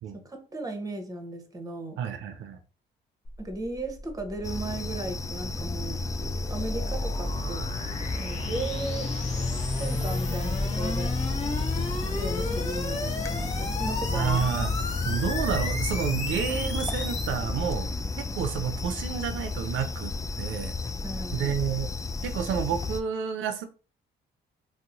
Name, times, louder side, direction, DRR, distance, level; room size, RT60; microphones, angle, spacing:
voice 1, 0.1-2.0 3.4-6.0 6.5-7.7 8.2-9.1 9.8-11.1 12.1-14.4 21.0-21.6, right 2 dB, 15° right, 5 dB, 0.9 m, -36 dB
voice 2, 2.0-2.6 14.1-14.8 15.0-17.9 18.2-20.1 20.4-20.7 21.3-21.9 22.2-23.7, right 8 dB, 85° right, 8 dB, 0.5 m, -30 dB
sound 1, 3.2-17.4, left 2 dB, 35° left, 1.0 m, -35 dB
sound 2, 4.4-23.0, left 3 dB, 15° left, 0.3 m, -31 dB
2.8 x 2.1 x 3.8 m, 0.36 s
cardioid pair, 90°, 20 cm